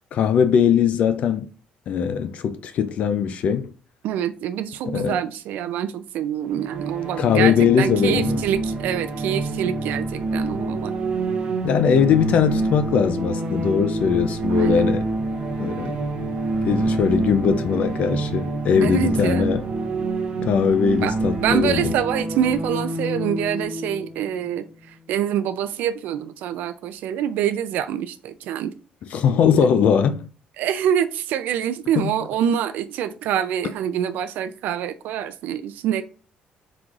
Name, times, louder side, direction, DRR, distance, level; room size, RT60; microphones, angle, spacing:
voice 1, 0.1-1.5 1.9-3.7 4.9-5.2 7.2-8.4 11.6-15.0 15.6-16.0 16.6-19.6 20.4-21.9 29.1-30.3 32.0-32.1, left 7 dB, 50° left, 0.3 m, -20 dB
voice 2, 4.0-10.9 14.5-14.8 18.8-19.5 21.0-28.7 30.6-36.0, right 9 dB, 75° right, 0.3 m, -26 dB
sound 1, 6.5-25.1, right 2 dB, 40° right, 0.8 m, -27 dB
4.6 x 3.9 x 2.4 m
cardioid pair, 170°, 3 cm